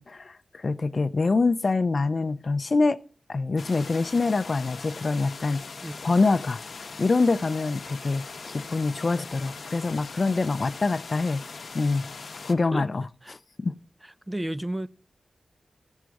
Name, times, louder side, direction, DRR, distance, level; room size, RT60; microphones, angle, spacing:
voice 1, 0.0-3.0 3.3-5.7 6.0-6.6 7.0-11.5 11.7-12.1 12.4-13.0 13.6-13.7, left 3 dB, 50° left, 0.4 m, -25 dB
sound 1, 3.6-12.5, left 4 dB, 70° left, 0.8 m, -41 dB
voice 2, 14.0-14.9, right 1 dB, 15° right, 0.4 m, -33 dB
14.0 x 6.2 x 4.6 m
wide cardioid pair, 80°, 0 cm